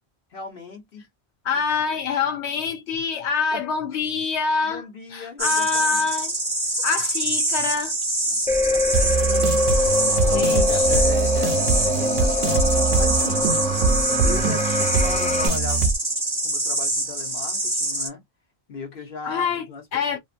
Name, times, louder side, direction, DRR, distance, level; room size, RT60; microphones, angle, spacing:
voice 1, 0.3-1.1 1.5-1.6 3.5-3.6 4.6-6.1 8.3-8.4 8.7-9.5 10.2-13.5 14.2-15.9 16.4-18.2 18.7-20.2, left 4 dB, 55° left, 1.1 m, -37 dB
voice 2, 1.4-4.8 5.1-6.3 6.8-7.9 10.2-10.8 19.2-20.2, left 5 dB, 80° left, 0.9 m, -25 dB
sound 1, 5.4-18.1, right 1 dB, 25° right, 0.9 m, -25 dB
sound 2, 8.5-15.5, left 2 dB, 10° left, 0.3 m, -24 dB
sound 3, 8.9-15.9, right 5 dB, 65° right, 0.9 m, -24 dB
2.6 x 2.5 x 2.5 m
omnidirectional pair, 1.1 m